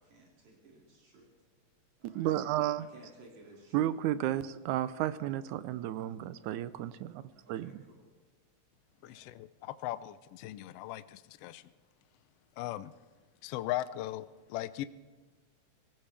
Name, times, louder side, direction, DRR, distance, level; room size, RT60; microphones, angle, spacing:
voice 1, 0.0-1.3 2.0-2.4 2.8-4.0 7.6-8.1 9.0-9.3, right 2 dB, 70° right, 3.8 m, -56 dB
voice 2, 2.0-2.8 3.7-7.2 7.5-7.8, right 13 dB, 85° right, 2.1 m, -32 dB
voice 3, 9.0-11.6 12.6-12.9 13.4-14.8, left 14 dB, 85° left, 1.3 m, -38 dB
24.0 x 17.0 x 3.4 m
omnidirectional pair, 3.4 m